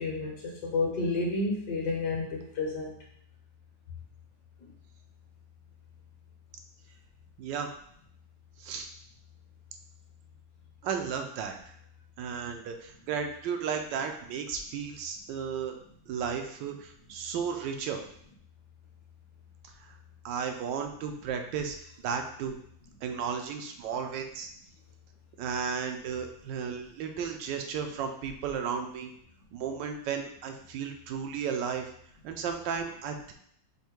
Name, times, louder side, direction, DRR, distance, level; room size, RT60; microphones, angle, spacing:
voice 1, 0.0-2.9 4.6-4.7, left 3 dB, 65° left, -2 dB, 1.6 m, -30 dB
voice 2, 7.4-7.7 8.6-8.9 10.8-11.6 12.2-15.8 16.1-18.0 19.8-20.0 20.2-21.8 22.0-22.6 23.0-24.5 25.4-29.1 29.5-31.9 32.2-33.3, right 6 dB, 80° right, 5 dB, 1.2 m, -34 dB
5.5 x 2.1 x 4.5 m, 0.67 s
omnidirectional pair, 2.0 m